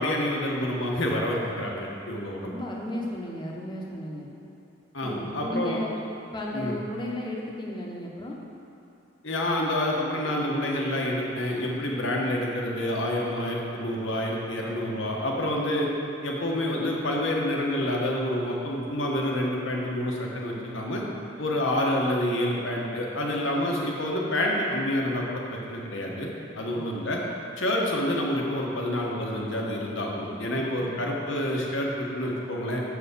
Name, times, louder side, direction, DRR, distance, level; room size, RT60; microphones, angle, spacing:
voice 1, 0.0-2.5 4.9-5.8 6.5-6.7 9.2-15.9 16.2-21.0 21.4-27.2 27.6-32.8, left 1 dB, 70° left, -2 dB, 1.2 m, -28 dB
voice 2, 2.4-4.3 5.0-6.0 6.3-8.4 30.2-31.0, left 1 dB, 20° left, -2 dB, 0.9 m, -34 dB
7.2 x 4.9 x 6.7 m, 2.6 s
head